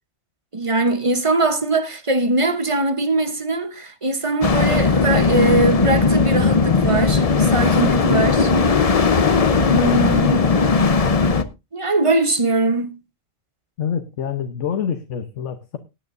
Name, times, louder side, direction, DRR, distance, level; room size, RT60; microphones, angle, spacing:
voice 1, 0.5-9.0 9.7-10.5 11.7-13.0, right 2 dB, 30° right, 0.9 m, -21 dB
sound 1, 4.4-11.4, left 4 dB, 35° left, 0.7 m, -17 dB
voice 2, 13.8-15.8, left 8 dB, 75° left, 1.2 m, -26 dB
18.5 x 9.1 x 2.6 m
omnidirectional pair, 1.3 m